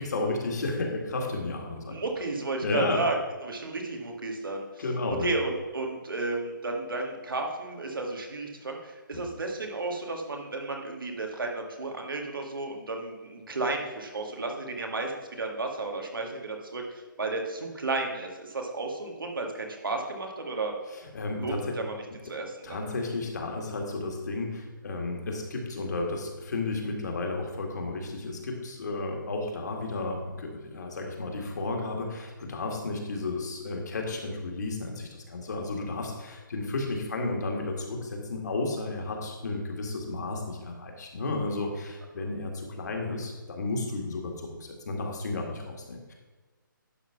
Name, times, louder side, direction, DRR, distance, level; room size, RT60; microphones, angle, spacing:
voice 1, 0.0-2.0 2.6-3.0 4.8-5.3 9.1-9.3 20.9-21.8 22.6-46.1, left 2 dB, 55° left, 1 dB, 1.9 m, -33 dB
voice 2, 1.9-3.1 3.4-4.8 5.2-20.7 21.4-22.0 22.3-22.8 42.2-42.3, right 3 dB, 90° right, 2 dB, 1.9 m, -33 dB
11.0 x 4.0 x 5.9 m, 1.3 s
hypercardioid pair, 165°, 11 cm